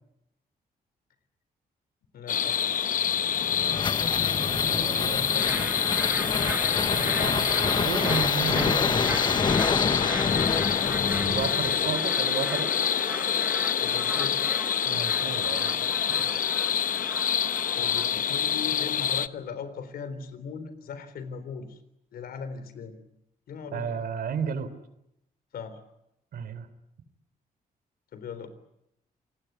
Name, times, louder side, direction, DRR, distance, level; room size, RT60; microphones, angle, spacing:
voice 1, 2.1-2.7 4.9-6.1 10.3-11.2 13.8-14.5 17.7-21.8 22.1-23.0 23.5-24.0 25.5-25.8 28.1-28.5, left 6 dB, 80° left, 12 dB, 3.8 m, -39 dB
sound 1, 2.3-19.3, left 9 dB, 60° left, 1.0 m, -27 dB
sound 2, 3.1-12.0, left 4 dB, 30° left, 1.0 m, -28 dB
voice 2, 4.3-5.2 6.9-10.5 11.2-12.7 14.8-16.3 23.7-24.7 26.3-26.7, right 6 dB, 80° right, 13 dB, 3.3 m, -34 dB
sound 3, 5.3-18.1, right 2 dB, 10° right, 1.5 m, -38 dB
28.0 x 19.5 x 9.1 m, 0.82 s
cardioid pair, 110°, 15 cm